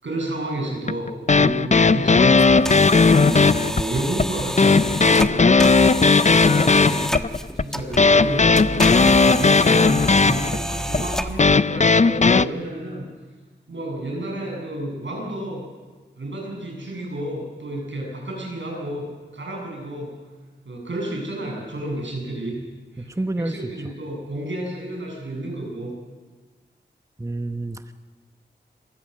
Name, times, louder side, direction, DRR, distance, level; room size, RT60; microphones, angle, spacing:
voice 1, 0.0-2.4 3.1-5.6 6.4-7.3 7.5-13.1 13.7-15.6 16.2-20.1 20.7-22.6 22.9-25.9, right 1 dB, 80° right, -1 dB, 7.3 m, -31 dB
sound 1, 0.9-12.4, left 4 dB, 40° left, 0.6 m, -16 dB
sound 2, 2.4-11.6, equal, 5° left, 1.3 m, -30 dB
voice 2, 23.0-23.7 27.2-27.9, right 2 dB, 15° right, 8 dB, 1.0 m, -28 dB
25.5 x 19.5 x 6.5 m, 1.3 s
cardioid pair, 45°, 19 cm